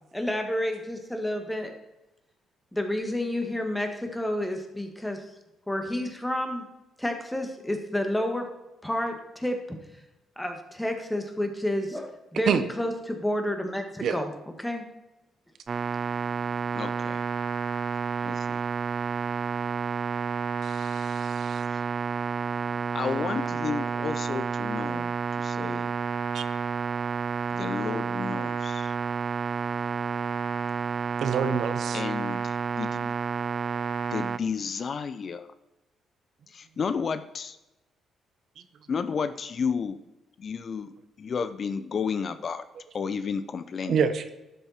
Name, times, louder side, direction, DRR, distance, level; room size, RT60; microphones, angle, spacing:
voice 1, 0.1-1.7 2.7-5.2 5.7-6.6 7.0-8.5 8.8-9.6 10.4-14.3 14.6-14.8, left 1 dB, 5° left, 4 dB, 1.8 m, -30 dB
sound 1, 15.7-34.4, right 6 dB, 45° right, 0.4 m, -30 dB
voice 2, 16.7-17.3 18.2-18.6 21.7-21.8 22.9-25.9 27.5-28.9 31.9-33.1 34.1-35.5 36.5-37.6 38.9-40.0 40.4-42.6 42.9-44.0, left 6 dB, 45° left, 12 dB, 0.5 m, -32 dB
voice 3, 20.6-21.6 26.3-26.4 31.2-32.0 43.9-44.2, right 6 dB, 65° right, 10 dB, 0.8 m, -27 dB
12.0 x 6.8 x 4.4 m, 0.98 s
cardioid pair, 90°, 0 cm